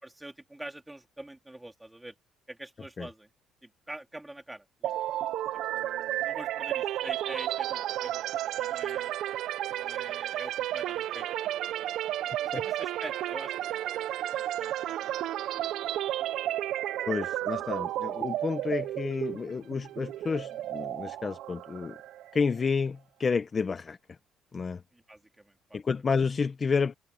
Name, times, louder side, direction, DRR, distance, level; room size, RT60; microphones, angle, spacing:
voice 1, 0.0-2.1 2.5-3.3 3.6-4.9 5.7-9.1 9.7-11.9 12.4-15.1 15.6-15.7 24.9-25.8, right 1 dB, 5° right, 3.2 m, -46 dB
sound 1, 4.8-22.6, right 13 dB, 65° right, 0.6 m, -32 dB
voice 2, 17.1-22.0 22.3-24.2 24.5-24.8 25.7-26.9, left 5 dB, 25° left, 0.8 m, -30 dB
cardioid pair, 145°, 0 cm